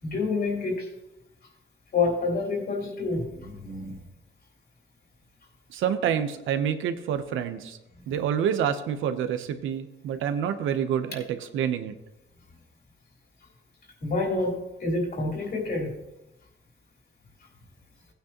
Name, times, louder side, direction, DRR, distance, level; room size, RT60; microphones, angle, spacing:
voice 1, 0.0-0.9 1.9-4.0 14.0-16.0, left 3 dB, 50° left, -1 dB, 3.6 m, -28 dB
voice 2, 5.7-7.8 8.1-11.9, right 8 dB, 85° right, 9 dB, 0.9 m, -27 dB
16.0 x 9.1 x 3.0 m, 0.92 s
cardioid pair, 90°, 20 cm